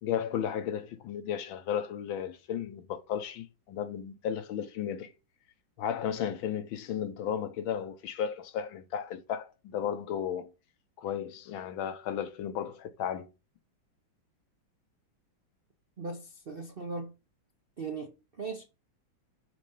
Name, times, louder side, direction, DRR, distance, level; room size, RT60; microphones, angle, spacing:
voice 1, 0.0-5.1 5.8-10.5 11.0-13.3, left 9 dB, 80° left, 1.6 m, -34 dB
voice 2, 16.0-17.1 17.8-18.6, right 4 dB, 55° right, 0.6 m, -38 dB
6.2 x 3.9 x 5.4 m
omnidirectional pair, 2.2 m